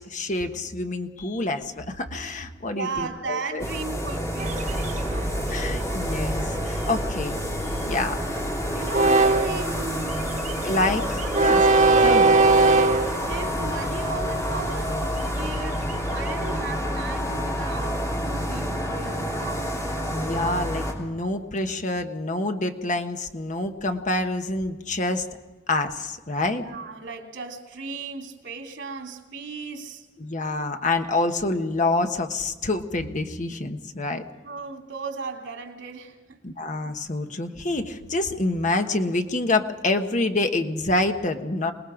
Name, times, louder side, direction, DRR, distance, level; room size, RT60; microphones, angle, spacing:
voice 1, 0.0-3.6 5.5-7.4 7.6-8.2 10.6-11.6 12.0-12.4 20.1-25.3 25.7-26.6 30.2-34.2 36.4-41.7, left 2 dB, 45° left, 1.3 m, -27 dB
voice 2, 2.7-5.3 8.7-10.5 10.9-11.6 13.3-19.7 26.5-30.1 34.4-36.4, right 4 dB, 85° right, 3.0 m, -36 dB
sound 1, 3.6-20.9, equal, 20° left, 3.0 m, -29 dB
Train, 4.4-17.4, right 3 dB, 45° right, 0.9 m, -24 dB
27.5 x 20.0 x 5.1 m
head